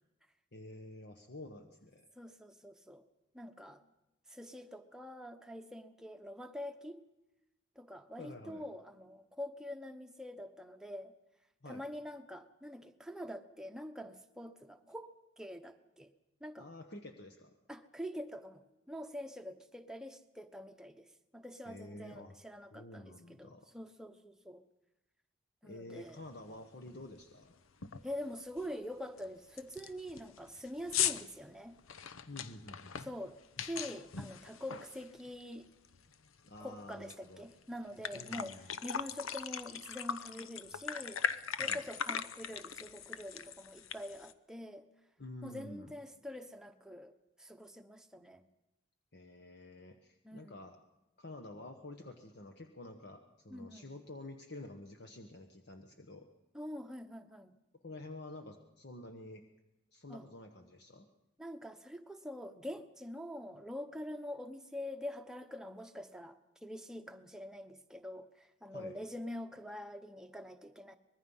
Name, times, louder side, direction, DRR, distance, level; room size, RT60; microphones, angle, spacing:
voice 1, 0.5-2.1 8.2-8.6 11.6-11.8 16.6-17.5 21.6-22.3 22.7-23.7 25.6-27.5 32.3-33.0 36.4-37.5 38.1-38.7 41.6-41.8 45.2-45.9 49.1-50.8 51.2-56.3 57.8-59.4 59.9-61.1 68.7-69.0, left 2 dB, 50° left, 5 dB, 1.2 m, -49 dB
voice 2, 2.1-3.0 3.3-3.8 4.3-7.0 7.8-11.1 11.6-16.1 16.4-16.7 17.7-21.1 21.3-24.6 25.6-26.2 28.0-31.8 33.0-35.7 36.6-41.2 41.6-44.9 45.4-47.1 47.4-48.4 50.2-50.6 53.5-53.9 56.5-57.5 60.1-60.3 61.4-71.0, left 1 dB, 5° right, 5 dB, 1.0 m, -45 dB
sound 1, 26.2-26.3 26.7-27.0 27.3-27.4 27.8-28.1 28.6-28.7 29.2-29.3 29.6-35.5 35.8-37.1 37.5-37.6 37.9-44.3, left 8 dB, 80° left, 0.9 m, -39 dB
24.5 x 21.0 x 5.6 m, 0.97 s
head